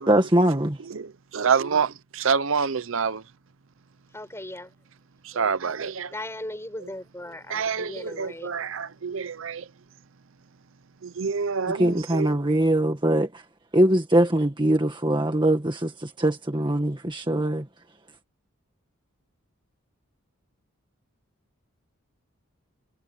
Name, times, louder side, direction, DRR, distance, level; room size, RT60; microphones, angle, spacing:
voice 1, 0.0-0.8 11.7-13.4 13.7-17.7, right 1 dB, 20° right, 1.7 m, -22 dB
voice 2, 0.9-3.2 5.2-6.1 7.5-9.6 11.0-12.3, right 6 dB, 65° right, 0.6 m, -27 dB
voice 3, 4.1-4.7 5.3-5.6 6.1-8.7, left 1 dB, 10° left, 5.9 m, -38 dB
head